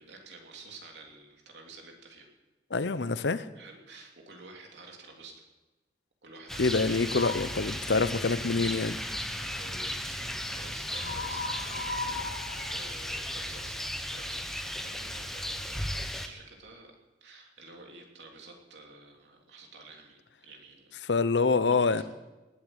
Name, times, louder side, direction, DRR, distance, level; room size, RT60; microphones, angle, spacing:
voice 1, 0.0-2.3 3.5-5.4 6.2-7.0 9.1-16.9 17.2-20.9 21.7-22.0, right 3 dB, 80° right, 1 dB, 3.2 m, -50 dB
voice 2, 2.7-3.5 6.6-9.0 21.0-22.0, left 4 dB, 85° left, 14 dB, 0.8 m, -26 dB
Rain, 6.5-16.3, equal, ahead, 1.0 m, -36 dB
sound 1, 7.0-7.6 10.9-13.7, left 3 dB, 70° left, 2.1 m, -37 dB
19.5 x 8.3 x 8.0 m, 1.1 s
head